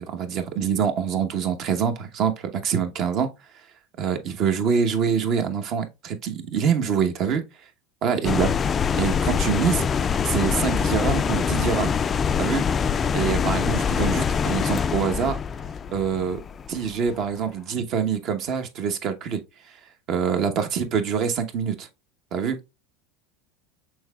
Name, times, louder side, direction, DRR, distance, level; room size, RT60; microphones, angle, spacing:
voice 1, 0.1-3.3 4.0-7.4 8.0-8.5 9.0-11.9 12.4-12.6 13.1-15.4 15.9-16.4 16.7-19.4 20.1-21.9 22.3-22.7, right 7 dB, 50° right, 0.9 m, -25 dB
sound 1, 8.2-17.2, left 6 dB, 30° left, 0.3 m, -24 dB
6.2 x 3.7 x 2.3 m
hypercardioid pair, 100°, 0 cm